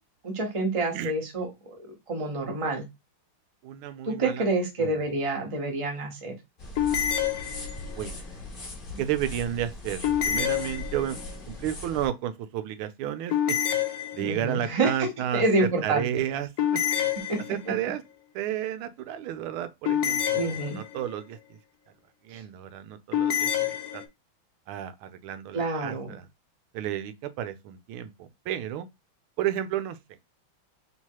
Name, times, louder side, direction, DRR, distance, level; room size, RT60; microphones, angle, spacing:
voice 1, 0.2-2.8 4.1-6.3 14.2-16.0 17.3-17.4 20.3-20.8 25.5-26.1, right 2 dB, 25° right, 0.8 m, -28 dB
voice 2, 3.6-4.5 4.8-5.0 7.8-8.2 9.0-11.2 11.5-13.8 14.1-17.1 17.5-18.0 18.3-21.6 22.2-24.0 24.7-26.3 26.7-28.9 29.4-30.0, right 11 dB, 90° right, 1.5 m, -32 dB
sound 1, 6.6-12.1, left 2 dB, 35° left, 1.0 m, -39 dB
sound 2, 6.8-8.1 10.0-11.3 13.3-14.6 16.6-17.9 19.8-21.1 23.1-24.0, left 10 dB, 65° left, 1.0 m, -28 dB
3.6 x 2.9 x 4.5 m
omnidirectional pair, 2.3 m